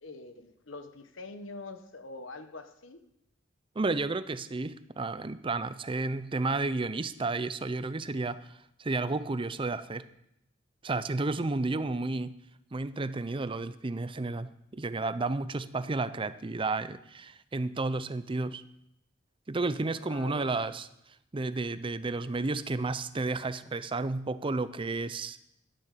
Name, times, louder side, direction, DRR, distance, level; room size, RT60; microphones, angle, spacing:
voice 1, 0.0-3.0 20.0-20.5, left 2 dB, 80° left, 1.2 m, -45 dB
voice 2, 3.8-8.4 8.8-10.0 10.8-12.3 12.7-18.6 19.5-20.9 21.3-25.4, right 3 dB, 25° right, 0.5 m, -32 dB
12.0 x 10.5 x 6.7 m
head